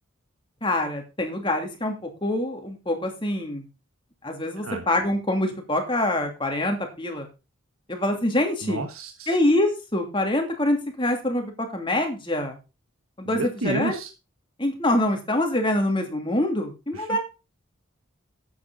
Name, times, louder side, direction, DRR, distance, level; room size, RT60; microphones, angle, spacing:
voice 1, 0.6-3.6 4.2-7.3 7.9-8.9 9.3-12.6 13.2-14.0 14.6-17.2, left 1 dB, 25° left, 3 dB, 2.7 m, -25 dB
voice 2, 8.6-9.3 13.3-14.1, right 3 dB, 90° right, 6 dB, 1.2 m, -30 dB
12.0 x 8.8 x 4.0 m, 0.30 s
head